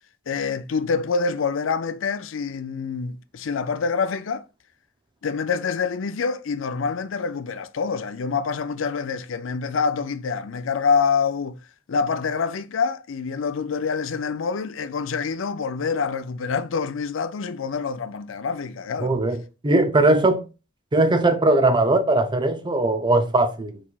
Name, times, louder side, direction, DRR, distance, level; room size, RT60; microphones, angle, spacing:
voice 1, 0.3-4.4 5.2-11.6 11.9-19.1, left 5 dB, 80° left, 0.5 m, -26 dB
voice 2, 19.0-20.4 20.9-23.8, right 2 dB, 25° right, 0.6 m, -20 dB
4.7 x 4.1 x 2.4 m
head